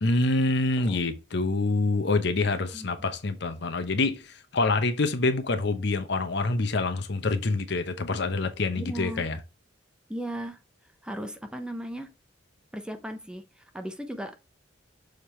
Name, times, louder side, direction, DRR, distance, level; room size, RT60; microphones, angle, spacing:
voice 1, 0.0-9.4, left 3 dB, 60° left, 0.9 m, -26 dB
voice 2, 2.7-3.1 8.8-9.3 10.1-10.6 11.0-12.1 12.7-14.4, equal, 5° right, 0.7 m, -37 dB
6.6 x 3.6 x 4.4 m
head